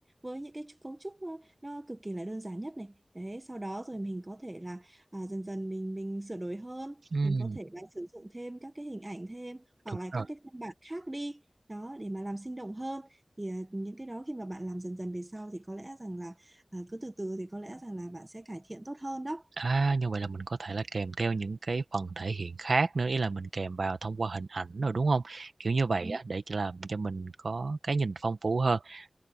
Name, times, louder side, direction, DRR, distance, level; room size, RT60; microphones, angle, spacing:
voice 1, 0.2-11.4 11.7-13.1 13.4-19.4 26.0-26.2, right 1 dB, 25° right, 1.3 m, -39 dB
voice 2, 7.1-7.6 9.9-10.3 19.6-29.1, right 3 dB, 80° right, 1.2 m, -30 dB
wide cardioid pair, 55°, 0 cm